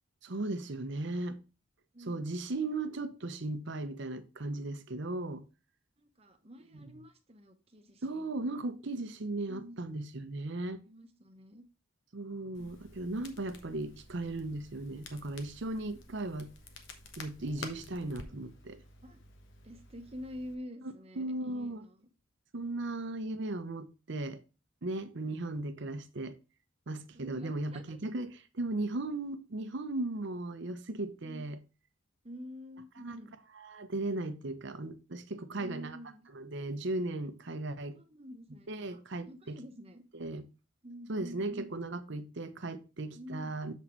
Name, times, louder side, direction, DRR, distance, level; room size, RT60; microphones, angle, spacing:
voice 1, 0.2-1.4 2.1-5.4 6.7-6.9 8.0-10.8 12.1-16.5 17.2-18.8 21.2-21.9 22.5-24.4 24.8-26.4 26.9-31.6 33.0-33.2 33.7-36.0 36.3-38.0 38.7-39.6 40.2-40.4 41.1-43.7, right 2 dB, 60° right, 0.7 m, -37 dB
voice 2, 1.9-2.5 6.0-8.3 9.5-9.9 10.8-11.7 12.6-12.7 19.0-19.2 19.6-22.1 25.2-25.5 27.1-28.0 31.2-31.5 32.2-33.3 35.5-36.3 37.9-40.0 40.8-41.7 43.1-43.6, equal, 30° right, 1.0 m, -48 dB
Crackle, 12.5-20.5, left 3 dB, 60° left, 1.1 m, -51 dB
7.2 x 4.2 x 4.4 m
head